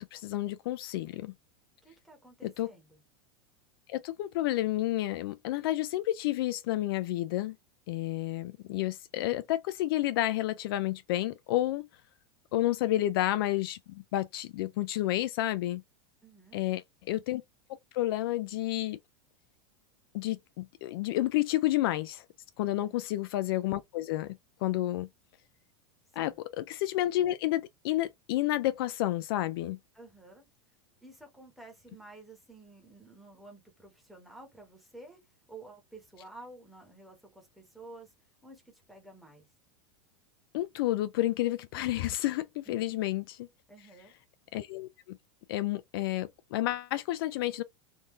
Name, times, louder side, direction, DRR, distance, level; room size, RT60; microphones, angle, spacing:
voice 1, 0.0-1.3 2.4-2.7 3.9-7.6 7.9-11.9 12.5-15.8 16.5-17.4 17.9-19.0 20.1-22.2 22.6-25.1 26.2-29.8 40.5-43.5 44.5-45.2 45.5-47.6, left 15 dB, 55° left, 0.4 m, -30 dB
voice 2, 1.8-3.0 16.2-16.6 22.7-23.0 24.7-24.9 26.2-26.4 29.9-30.5 31.0-35.2 35.5-38.1 38.4-38.6 38.9-39.4 42.7-43.0 43.7-44.1, right 2 dB, ahead, 1.2 m, -51 dB
3.7 x 2.6 x 3.1 m
supercardioid pair, 170°, 14 cm